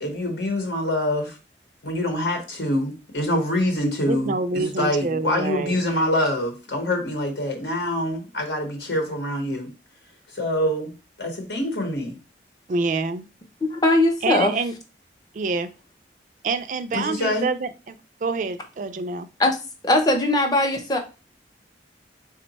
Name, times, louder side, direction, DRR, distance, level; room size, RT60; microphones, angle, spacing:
voice 1, 0.0-1.4 1.8-9.7 10.3-10.9 11.2-12.2 16.9-17.5, left 1 dB, 70° left, 0.9 m, -25 dB
voice 2, 4.1-5.8 12.7-13.3 14.2-14.7 15.3-15.7 16.4-19.3, right 3 dB, 45° right, 0.3 m, -26 dB
voice 3, 13.6-14.5 19.4-19.6 19.8-21.0, left 1 dB, 20° left, 0.6 m, -20 dB
3.7 x 2.2 x 4.0 m
head